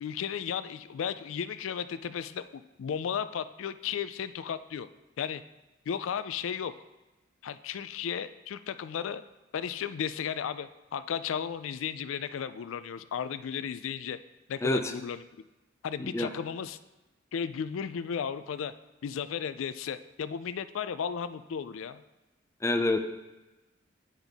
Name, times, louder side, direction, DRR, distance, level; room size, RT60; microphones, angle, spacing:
voice 1, 0.0-4.9 5.2-5.4 5.9-6.7 7.4-9.2 9.5-14.2 14.5-15.2 15.8-16.8 17.3-18.7 19.0-22.0, left 7 dB, 85° left, 13 dB, 0.4 m, -34 dB
voice 2, 14.6-14.9 16.0-16.3 22.6-23.0, left 2 dB, 15° left, 7 dB, 0.4 m, -27 dB
8.9 x 5.6 x 3.5 m, 1.1 s
head